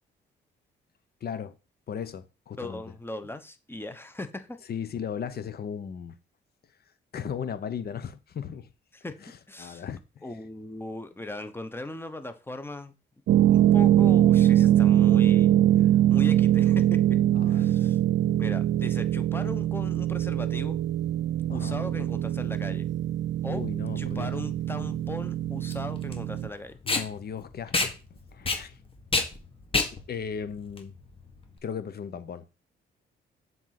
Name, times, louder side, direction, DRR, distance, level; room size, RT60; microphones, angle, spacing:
voice 1, 1.2-1.6 1.9-2.8 4.7-6.2 7.1-8.7 9.2-10.2 17.3-17.8 21.5-21.8 23.5-24.3 26.8-28.8 29.9-31.0 31.6-32.5, left 7 dB, 50° left, 1.1 m, -36 dB
voice 2, 2.6-4.6 8.9-9.1 9.5-9.8 10.2-12.9 13.5-17.2 17.5-18.0 18.4-20.8 21.5-22.9 23.4-23.7 24.0-26.8, left 2 dB, 10° left, 1.0 m, -38 dB
sound 1, 13.3-26.5, right 12 dB, 65° right, 0.6 m, -23 dB
Packing tape duct tape, 24.1-31.6, left 3 dB, 25° left, 1.8 m, -30 dB
7.3 x 4.1 x 5.9 m
cardioid pair, 90°, 20 cm